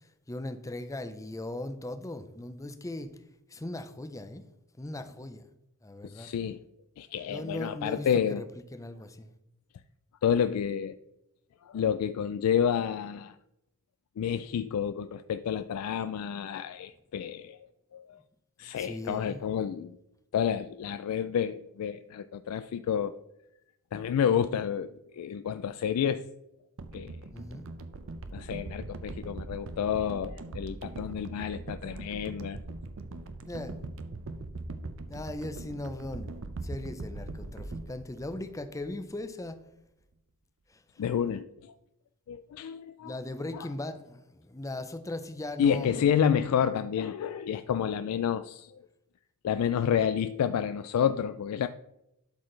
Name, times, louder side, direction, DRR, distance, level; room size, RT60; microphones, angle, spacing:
voice 1, 0.0-3.1 3.5-4.4 4.7-5.5 5.8-6.3 7.3-8.5 8.7-9.3 18.7-19.5 27.3-27.6 33.4-33.8 35.1-36.3 36.6-39.6 40.7-41.0 43.0-46.0, left 1 dB, 15° left, 9 dB, 0.5 m, -38 dB
voice 2, 6.0-6.6 7.0-8.4 10.2-11.0 11.6-13.4 14.2-18.2 18.6-20.0 20.3-23.1 23.9-26.3 26.9-27.1 28.3-32.6 41.0-41.7 42.3-43.1 43.5-43.7 45.6-48.8 49.4-51.7, left 8 dB, 75° left, 11 dB, 0.3 m, -29 dB
sound 1, 26.8-39.1 39.4-39.5, right 2 dB, 60° right, 0.6 m, -41 dB
12.0 x 4.1 x 3.2 m, 0.85 s
head